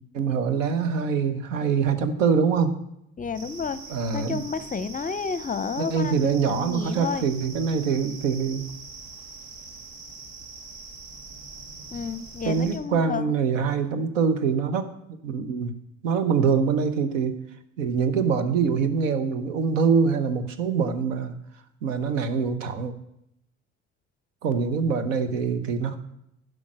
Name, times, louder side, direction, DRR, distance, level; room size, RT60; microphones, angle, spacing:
voice 1, 0.1-2.8 3.9-4.4 5.8-8.6 12.4-14.9 15.2-15.7 16.0-17.3 17.8-21.3 21.8-22.9 24.4-26.0, right 6 dB, 80° right, 10 dB, 1.0 m, -24 dB
voice 2, 3.2-3.8 4.1-7.3 11.9-13.3, left 5 dB, 20° left, 14 dB, 0.7 m, -31 dB
sound 1, 3.3-12.8, right 4 dB, 65° right, 1.6 m, -43 dB
11.0 x 5.0 x 6.3 m, 0.79 s
hypercardioid pair, 60°, 37 cm